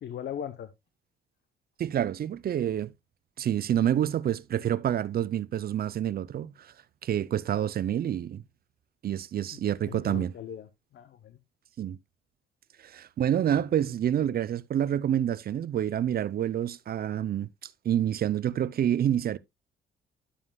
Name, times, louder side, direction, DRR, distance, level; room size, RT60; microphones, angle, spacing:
voice 1, 0.0-0.7 9.5-11.4, left 9 dB, 60° left, 0.8 m, -39 dB
voice 2, 1.8-2.9 3.4-6.7 7.0-8.4 9.0-10.3 11.8-12.0 12.8-19.4, right 10 dB, 50° right, 0.5 m, -28 dB
11.5 x 7.4 x 2.3 m
cardioid pair, 90°, 20 cm